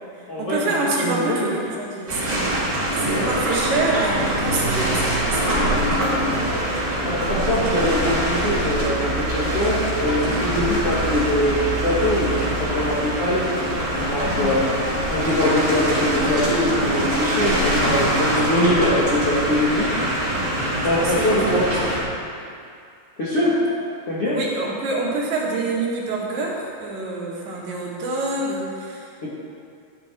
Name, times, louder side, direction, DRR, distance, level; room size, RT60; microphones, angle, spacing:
voice 1, 0.2-6.0 14.2-14.5 21.0-21.9 24.2-29.1, right 2 dB, 65° right, -4 dB, 4.2 m, -27 dB
voice 2, 1.0-1.6 3.1-3.3 6.4-6.6 7.0-11.6 11.8-12.3 12.6-13.4 14.1-14.7 15.1-19.9 20.8-22.0 23.2-23.6 24.1-24.4 29.2-29.3, left 1 dB, 45° left, -9 dB, 2.0 m, -23 dB
sound 1, 2.1-22.0, right 1 dB, 20° right, 3.8 m, -23 dB
14.5 x 13.0 x 4.6 m, 2.4 s
omnidirectional pair, 5.7 m